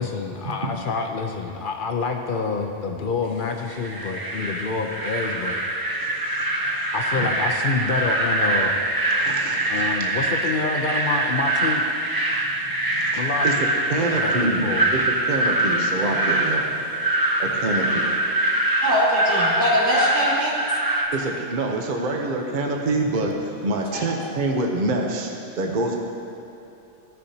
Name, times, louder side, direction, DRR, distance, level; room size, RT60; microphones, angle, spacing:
voice 1, 0.0-5.6 6.9-8.8 9.7-11.8 13.1-13.5 14.0-14.9, left 4 dB, 55° left, 3 dB, 0.7 m, -27 dB
sound 1, 3.7-21.0, right 1 dB, 25° right, 0.6 m, -24 dB
voice 2, 6.0-6.9 9.2-10.2 12.3-17.1 17.4-18.1 21.1-26.0, right 2 dB, 50° right, 1 dB, 0.9 m, -27 dB
voice 3, 18.8-20.5 23.9-24.0, equal, 85° right, -8 dB, 2.6 m, -21 dB
15.0 x 6.6 x 2.8 m, 2.9 s
omnidirectional pair, 1.2 m